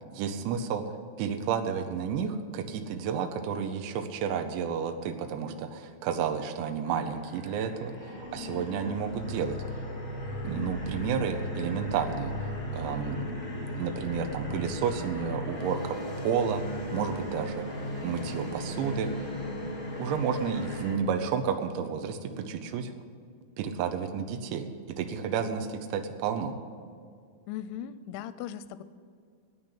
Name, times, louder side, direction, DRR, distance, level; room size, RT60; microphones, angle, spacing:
voice 1, 0.1-0.8 1.2-9.6 10.4-16.6 16.9-17.7 18.0-19.1 19.6-19.7 20.0-22.9 23.6-26.6, right 7 dB, 80° right, 7 dB, 3.0 m, -31 dB
sound 1, 6.8-21.0, left 1 dB, 15° left, 1.7 m, -36 dB
voice 2, 27.5-28.8, left 10 dB, 85° left, 13 dB, 3.0 m, -38 dB
9.5 x 9.4 x 9.8 m, 2.1 s
omnidirectional pair, 5.4 m